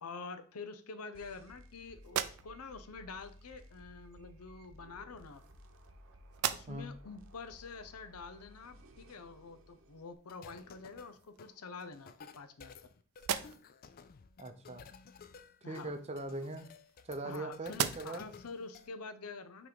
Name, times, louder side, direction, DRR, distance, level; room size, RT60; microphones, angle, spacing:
voice 1, 0.0-5.4 6.5-12.9 15.6-15.9 17.2-19.7, left 4 dB, 90° left, 10 dB, 0.7 m, -47 dB
sound 1, 1.1-10.1, equal, 60° right, 0.9 m, -57 dB
sound 2, 2.0-2.9 4.0-4.2 5.1-6.0 6.3-7.0 7.5-7.6 10.3-10.4 10.8-11.5 12.1-12.8 13.1-13.9 15.9-17.3 17.7-18.4, right 9 dB, 80° right, 0.4 m, -39 dB
sound 3, 10.3-18.9, left 6 dB, 40° left, 0.4 m, -54 dB
voice 2, 14.4-14.8 15.6-16.7 17.0-18.2, right 2 dB, 30° right, 8 dB, 0.6 m, -41 dB
5.9 x 3.1 x 5.1 m, 0.43 s
head